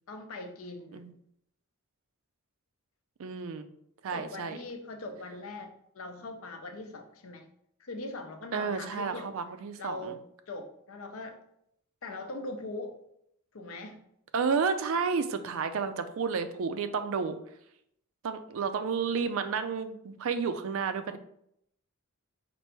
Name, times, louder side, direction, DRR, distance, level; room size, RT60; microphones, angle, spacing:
voice 1, 0.1-1.1 4.1-7.5 7.8-9.3 9.8-10.2 10.5-11.4 12.0-12.9 13.5-14.0, left 2 dB, 65° left, 6 dB, 0.6 m, -41 dB
voice 2, 3.2-3.7 4.0-4.6 8.5-10.2 14.3-17.4 18.2-21.2, right 5 dB, 60° right, 10 dB, 0.4 m, -31 dB
4.5 x 2.6 x 4.3 m, 0.74 s
head